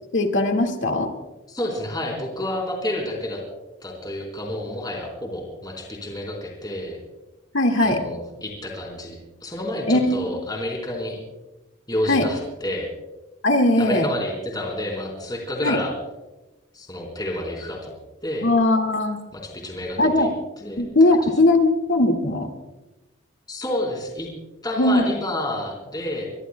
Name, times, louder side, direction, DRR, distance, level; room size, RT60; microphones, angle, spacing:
voice 1, 0.1-1.1 7.5-8.0 9.9-10.4 12.1-12.3 13.4-14.1 15.6-15.8 18.4-19.2 20.0-20.3 20.8-22.5 24.8-25.1, left 2 dB, 70° left, 4 dB, 1.9 m, -19 dB
voice 2, 1.5-3.4 3.8-7.0 7.8-11.2 11.9-12.9 13.8-15.9 16.7-18.5 19.3-20.3 20.6-20.8 23.5-24.3 24.6-26.3, left 1 dB, 20° left, 0 dB, 3.9 m, -29 dB
24.5 x 24.0 x 2.2 m, 1.1 s
head